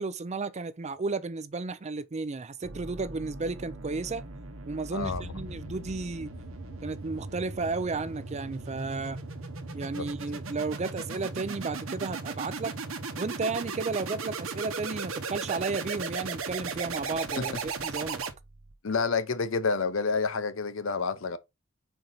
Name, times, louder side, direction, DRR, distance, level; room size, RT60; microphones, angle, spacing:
voice 1, 0.0-4.2 4.7-6.3 6.8-9.2 9.7-12.8 13.2-18.2, right 3 dB, 35° right, 0.5 m, -33 dB
sound 1, 2.6-18.7, right 4 dB, 75° right, 0.9 m, -37 dB
voice 2, 4.9-5.3 10.0-10.1 17.4-17.5 18.8-21.4, left 4 dB, 70° left, 0.7 m, -29 dB
sound 2, 5.0-12.4, left 1 dB, 35° left, 0.9 m, -47 dB
5.2 x 4.5 x 3.9 m
head